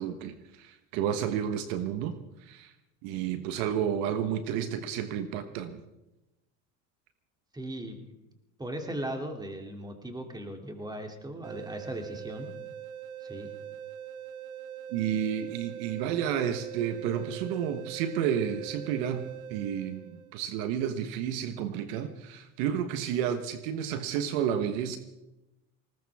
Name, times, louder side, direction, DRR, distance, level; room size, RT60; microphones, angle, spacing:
voice 1, 0.0-2.7 3.0-5.8 14.9-25.0, right 9 dB, 70° right, 10 dB, 1.4 m, -31 dB
voice 2, 7.5-8.0 8.6-12.5 13.2-13.5, right 1 dB, 10° right, 3 dB, 2.9 m, -38 dB
Fantasy C Hi Long, 11.4-20.4, right 9 dB, 90° right, 0.9 m, -43 dB
20.0 x 18.5 x 3.6 m, 0.95 s
hypercardioid pair, 90°, 41 cm